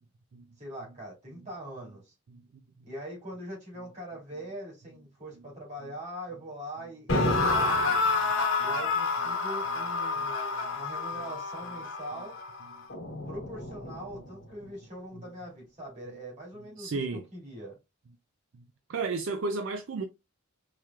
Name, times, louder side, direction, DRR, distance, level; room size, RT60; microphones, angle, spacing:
voice 1, 0.6-2.1 2.9-8.0 8.6-12.4 13.3-17.8, right 1 dB, 30° right, 2.2 m, -42 dB
sound 1, 7.1-14.2, left 3 dB, 60° left, 1.1 m, -29 dB
voice 2, 16.8-17.2 18.5-18.6 18.9-20.0, right 4 dB, 60° right, 0.4 m, -33 dB
4.8 x 2.9 x 2.3 m
head